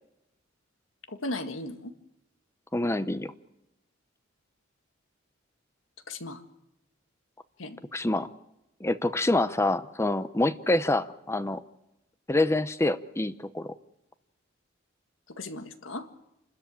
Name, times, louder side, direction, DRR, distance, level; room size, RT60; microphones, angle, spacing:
voice 1, 1.1-1.9 6.1-6.4 7.6-7.8 15.4-16.1, left 2 dB, 70° left, 8 dB, 1.9 m, -36 dB
voice 2, 2.7-3.3 7.9-8.3 8.8-11.6 12.3-13.7, left 2 dB, 15° left, 13 dB, 0.7 m, -26 dB
29.0 x 13.0 x 8.7 m, 0.90 s
head